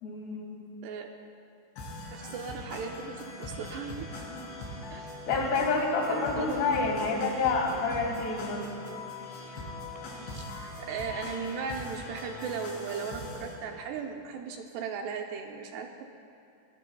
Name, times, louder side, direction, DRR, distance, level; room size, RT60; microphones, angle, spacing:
voice 1, 0.0-0.6 5.3-8.8, left 4 dB, 70° left, 1 dB, 3.7 m, -28 dB
sound 1, 1.8-13.5, left 2 dB, 85° left, 5.4 m, -41 dB
voice 2, 2.1-4.1 4.9-5.2 6.1-6.5 7.1-7.3 10.3-16.0, right 6 dB, 80° right, 3 dB, 2.5 m, -37 dB
23.0 x 19.0 x 2.3 m, 2.6 s
omnidirectional pair, 5.2 m